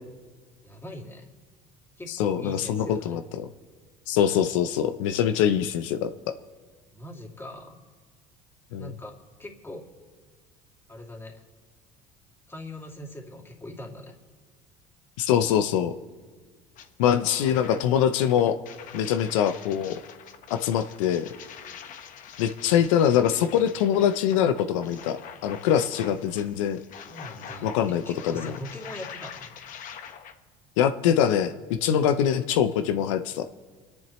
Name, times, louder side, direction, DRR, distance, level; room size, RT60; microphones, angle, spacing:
voice 1, 0.6-1.3 2.0-3.2 6.9-7.8 8.8-9.9 10.9-11.4 12.5-14.1 17.1-17.6 27.1-29.6, left 1 dB, 15° left, 0 dB, 2.6 m, -41 dB
voice 2, 2.1-3.5 4.1-6.1 8.7-8.9 15.2-15.9 17.0-18.6 18.9-19.9 20.5-21.3 22.4-25.2 25.4-26.8 27.6-28.5 30.8-31.5 31.8-33.4, left 9 dB, 85° left, 8 dB, 0.6 m, -23 dB
sound 1, 16.8-16.9 17.3-30.3, left 8 dB, 55° left, 1.1 m, -44 dB
28.5 x 10.5 x 3.1 m, 1.5 s
supercardioid pair, 90°, 16 cm